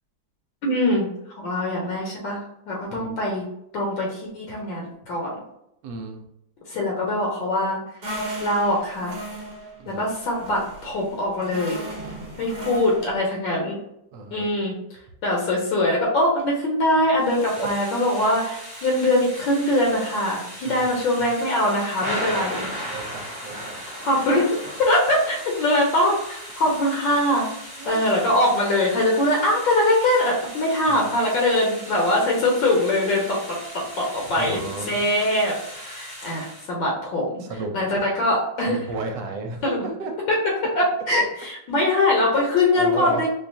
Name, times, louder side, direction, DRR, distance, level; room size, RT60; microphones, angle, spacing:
voice 1, 0.6-1.1 1.4-2.4 2.7-3.4 3.7-5.3 6.7-7.8 8.4-9.2 9.9-11.8 12.4-13.8 14.3-14.7 15.2-22.7 24.0-27.5 27.8-34.6 34.9-37.4 37.7-38.8 39.6-39.8 40.7-43.3, left 1 dB, 75° left, -2 dB, 1.5 m, -22 dB
voice 2, 5.8-6.2 9.8-10.0 14.1-14.5 17.6-17.7 20.7-21.3 22.2-22.6 22.9-23.8 27.8-28.0 30.9-31.0 34.3-34.9 37.4-37.8 38.7-40.1 42.7-43.3, right 3 dB, 75° right, 3 dB, 1.2 m, -33 dB
sound 1, 8.0-13.2, right 1 dB, 45° right, 0.8 m, -36 dB
Thunder / Rain, 17.2-36.7, equal, 15° left, 0.9 m, -37 dB
4.4 x 2.3 x 2.6 m, 0.80 s
omnidirectional pair, 2.2 m